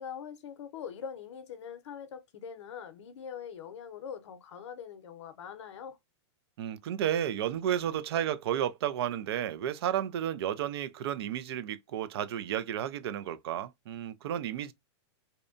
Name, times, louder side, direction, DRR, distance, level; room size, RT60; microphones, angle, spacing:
voice 1, 0.0-6.0, left 7 dB, 75° left, 0.7 m, -43 dB
voice 2, 6.6-14.7, right 10 dB, 60° right, 0.4 m, -32 dB
2.7 x 2.1 x 2.5 m
supercardioid pair, 155°, 15 cm